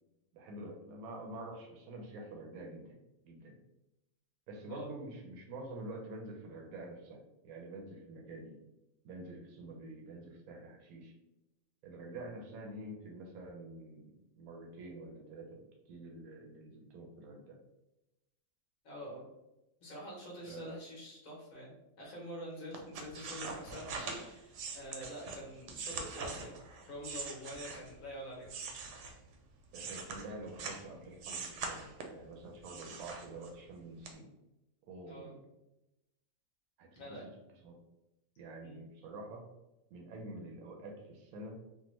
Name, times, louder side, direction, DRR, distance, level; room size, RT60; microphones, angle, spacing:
voice 1, 0.3-3.0 3.2-3.6 4.5-8.6 9.0-11.1 11.8-17.6 20.5-20.7 29.7-31.9 32.1-34.3 34.8-35.4 36.8-37.7 38.4-39.4 39.9-41.6, right 2 dB, 90° right, 1 dB, 1.1 m, -47 dB
voice 2, 18.8-19.2 19.8-26.6 26.8-28.5 35.1-35.4 36.9-37.2 38.6-38.8, equal, 75° left, -4 dB, 1.2 m, -46 dB
sound 1, 22.7-28.0 28.4-30.9 31.2-32.2 32.6-33.7 34.0-34.1, right 4 dB, 70° right, 0.8 m, -43 dB
3.4 x 2.0 x 3.0 m, 0.96 s
omnidirectional pair, 1.4 m